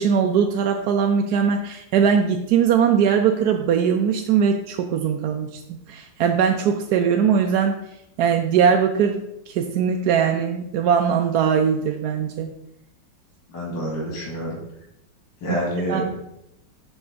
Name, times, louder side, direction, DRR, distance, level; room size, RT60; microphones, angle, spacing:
voice 1, 0.0-5.5 5.9-7.8 8.2-12.5 15.5-15.6 15.9-16.2, right 7 dB, 70° right, 3 dB, 1.0 m, -20 dB
voice 2, 13.5-14.6 15.4-16.0, equal, 75° left, -3 dB, 2.5 m, -27 dB
7.9 x 3.5 x 5.7 m, 0.83 s
omnidirectional pair, 2.0 m